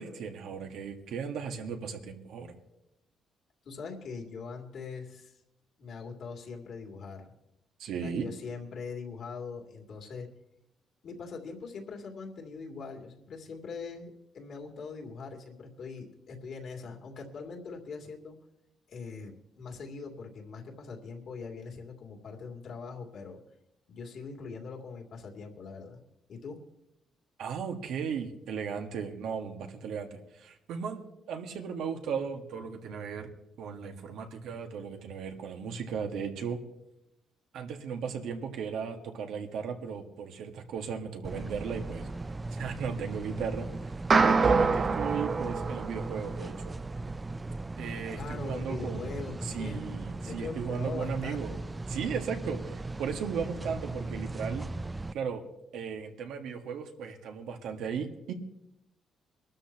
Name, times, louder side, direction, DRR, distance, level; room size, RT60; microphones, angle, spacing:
voice 1, 0.0-2.5 7.8-8.3 27.4-33.3 33.6-36.6 37.5-42.1 42.5-46.7 47.8-49.1 49.4-51.5 51.9-54.7 55.1-55.5 55.7-58.3, right 6 dB, 80° right, 4 dB, 1.7 m, -36 dB
voice 2, 3.6-5.4 5.8-7.3 8.0-10.3 11.0-18.4 18.9-23.4 23.9-26.0 26.3-26.6 48.1-49.9 50.2-51.7, left 4 dB, 65° left, 1 dB, 2.7 m, -42 dB
sound 1, 41.2-55.1, right 2 dB, 20° right, 0.4 m, -38 dB
sound 2, 44.1-46.6, right 4 dB, 40° right, 0.8 m, -25 dB
23.5 x 13.0 x 3.0 m, 0.86 s
cardioid pair, 90°, 0 cm